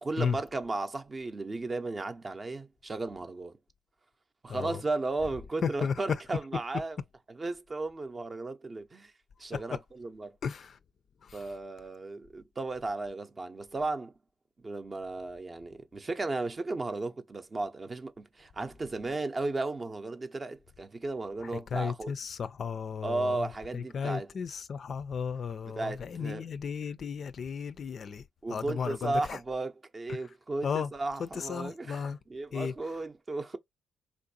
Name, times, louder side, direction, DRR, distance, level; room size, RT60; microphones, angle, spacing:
voice 1, 0.0-3.6 4.4-7.0 7.3-9.1 9.4-10.4 11.3-14.1 14.6-22.1 23.0-24.3 25.6-26.5 28.4-33.6, right 2 dB, 35° right, 0.5 m, -35 dB
voice 2, 4.5-4.8 5.6-5.9 9.5-9.6 10.4-10.8 11.2-11.4 21.4-23.5 23.7-28.2 28.5-29.4 30.6-30.9 31.2-32.2 32.5-32.7, left 6 dB, 55° left, 0.3 m, -34 dB
3.3 x 2.6 x 2.6 m
supercardioid pair, 60°, 0 cm